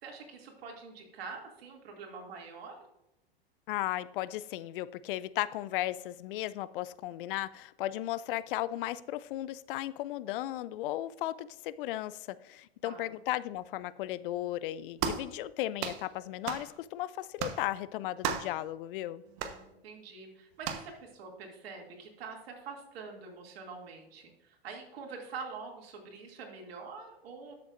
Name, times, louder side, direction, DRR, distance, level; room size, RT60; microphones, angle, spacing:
voice 1, 0.0-2.8 12.8-13.1 19.2-27.5, right 4 dB, 70° right, 2.5 m, -45 dB
voice 2, 3.7-19.2, left 14 dB, 55° left, 0.5 m, -35 dB
sound 1, 15.0-15.3 15.8-16.0 16.5-16.7 17.4-17.6 18.2-18.5 19.4-19.6 20.6-20.9, right 8 dB, 50° right, 1.1 m, -34 dB
12.5 x 6.8 x 2.5 m
hypercardioid pair, 100°, 32 cm